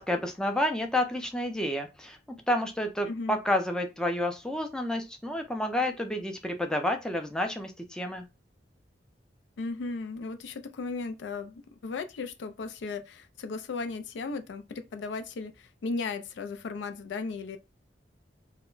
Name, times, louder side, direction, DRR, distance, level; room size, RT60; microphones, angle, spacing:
voice 1, 0.0-2.2 2.5-8.2, left 1 dB, 5° left, 0.4 m, -30 dB
voice 2, 3.1-3.4 9.6-17.6, left 4 dB, 80° left, 0.4 m, -36 dB
2.1 x 2.0 x 3.7 m
head